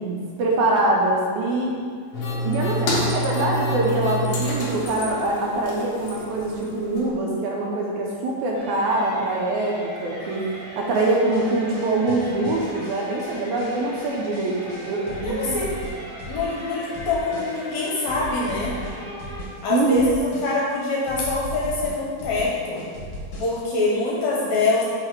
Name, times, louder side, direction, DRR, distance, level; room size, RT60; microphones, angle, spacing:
voice 1, 0.0-1.8 2.4-10.5 10.8-15.6 19.7-20.0, right 2 dB, 75° right, -2 dB, 1.9 m, -24 dB
sound 1, 2.1-7.1, equal, 90° left, 1.1 m, -27 dB
sound 2, 8.5-19.4, equal, 50° right, 1.2 m, -39 dB
sound 3, 10.9-16.6 16.9-17.7 18.1-19.6 19.9-20.7 21.1-23.7, left 1 dB, 55° left, 1.6 m, -38 dB
voice 2, 15.2-15.7 16.3-18.8 19.6-22.8 23.4-24.8, left 3 dB, 75° left, -4 dB, 1.9 m, -24 dB
5.7 x 3.9 x 4.5 m, 2.1 s
omnidirectional pair, 3.7 m